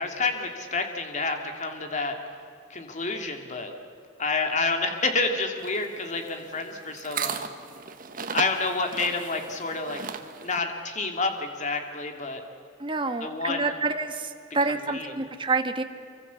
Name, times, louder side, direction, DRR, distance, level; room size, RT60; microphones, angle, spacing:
voice 1, 0.0-2.2 2.7-3.7 4.2-7.4 8.3-10.0 10.4-12.4 13.2-13.8 14.6-15.1, left 3 dB, 40° left, 4 dB, 2.7 m, -29 dB
sound 1, 5.6-10.6, right 6 dB, 45° right, 1.4 m, -36 dB
voice 2, 12.8-15.8, right 3 dB, 25° right, 6 dB, 1.6 m, -28 dB
27.5 x 24.0 x 7.1 m, 2.5 s
head